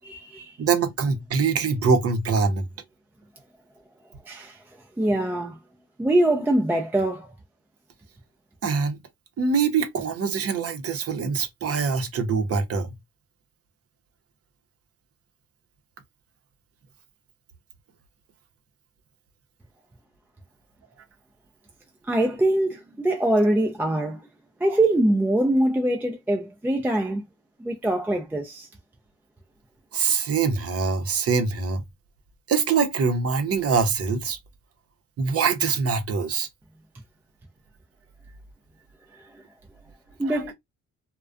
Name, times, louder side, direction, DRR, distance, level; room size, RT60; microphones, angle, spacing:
voice 1, 0.0-0.6 4.3-4.6 5.0-5.6 6.0-7.3 22.0-24.2 24.6-27.3 27.6-28.7 39.1-39.3 40.2-40.5, right 1 dB, 5° right, 0.3 m, -23 dB
voice 2, 0.6-2.7 8.6-9.0 9.4-12.9 29.9-31.8 32.5-34.4 35.2-36.5 40.2-40.4, right 5 dB, 50° right, 0.7 m, -24 dB
2.4 x 2.1 x 2.4 m
cardioid pair, 90°, 30 cm